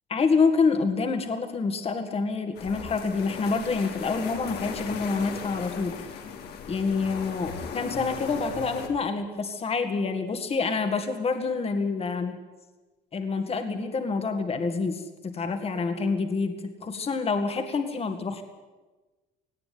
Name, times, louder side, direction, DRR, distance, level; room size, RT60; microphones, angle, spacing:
voice 1, 0.1-6.1 6.7-12.4 13.1-18.4, left 4 dB, 35° left, 6 dB, 2.1 m, -27 dB
sound 1, 2.5-8.9, left 6 dB, 75° left, 2.9 m, -37 dB
18.5 x 17.5 x 9.5 m, 1.2 s
cardioid pair, 110°, 17 cm